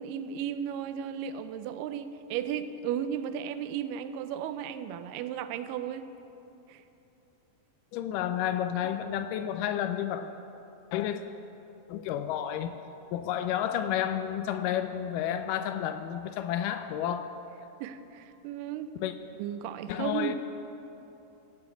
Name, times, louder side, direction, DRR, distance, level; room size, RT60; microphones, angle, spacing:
voice 1, 0.0-6.1 6.7-6.8 17.8-18.9 19.4-20.3, right 9 dB, 80° right, 11 dB, 2.0 m, -35 dB
voice 2, 7.9-10.3 10.9-11.2 11.9-12.8 13.1-17.3 19.0-19.1 19.9-20.3, left 10 dB, 85° left, 9 dB, 1.9 m, -31 dB
13.5 x 7.7 x 7.8 m, 2.9 s
omnidirectional pair, 4.3 m